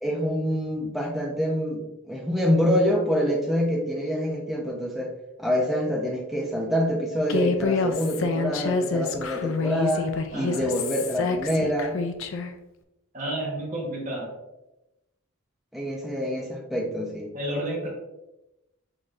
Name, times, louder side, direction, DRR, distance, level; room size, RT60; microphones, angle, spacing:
voice 1, 0.0-5.1 5.4-12.0 15.7-17.3, equal, ahead, -1 dB, 0.6 m, -26 dB
Human voice, 7.3-12.5, left 3 dB, 60° left, 0.4 m, -27 dB
voice 2, 10.3-10.6 13.1-14.4 17.3-17.9, right 1 dB, 35° right, -4 dB, 1.2 m, -31 dB
6.3 x 3.0 x 2.5 m, 0.94 s
head